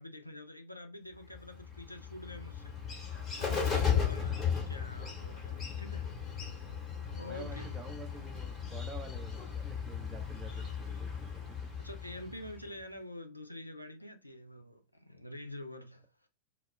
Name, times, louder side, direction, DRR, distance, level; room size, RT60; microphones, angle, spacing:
voice 1, 0.0-6.1 7.1-7.8 10.6-10.8 11.8-16.1, left 1 dB, 85° left, 0.3 m, -47 dB
Bird, 1.3-12.8, left 7 dB, 20° left, 0.8 m, -36 dB
voice 2, 4.2-4.5 7.1-11.7, right 3 dB, 15° right, 0.5 m, -49 dB
2.1 x 2.0 x 3.0 m
figure-of-eight pair, 90°, 0 cm